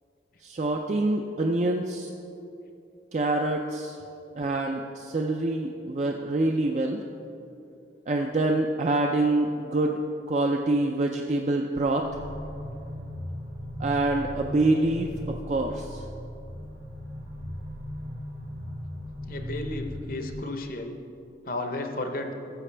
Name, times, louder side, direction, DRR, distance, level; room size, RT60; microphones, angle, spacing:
voice 1, 0.4-2.1 3.1-4.0 4.4-7.0 8.1-10.0 10.3-12.1 13.8-16.0, right 2 dB, 40° right, 2 dB, 0.4 m, -26 dB
sound 1, 12.0-20.3, equal, 80° right, 1.3 m, -37 dB
voice 2, 19.3-21.0 21.4-22.3, left 2 dB, 50° left, 5 dB, 0.7 m, -33 dB
13.5 x 7.5 x 3.3 m, 2.7 s
head